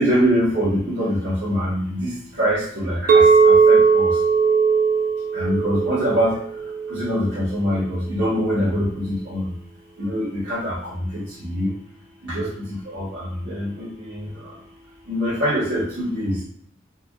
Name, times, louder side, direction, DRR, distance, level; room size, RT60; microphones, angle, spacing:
voice 1, 0.0-4.1 5.3-6.4 6.9-9.5 10.0-11.7 12.2-12.5 12.9-13.9 14.1-14.2 15.1-16.4, equal, 80° right, -12 dB, 1.4 m, -24 dB
Chink clink, 3.1-7.3, right 5 dB, 45° right, 0.4 m, -18 dB
4.4 x 2.5 x 2.3 m, 0.65 s
head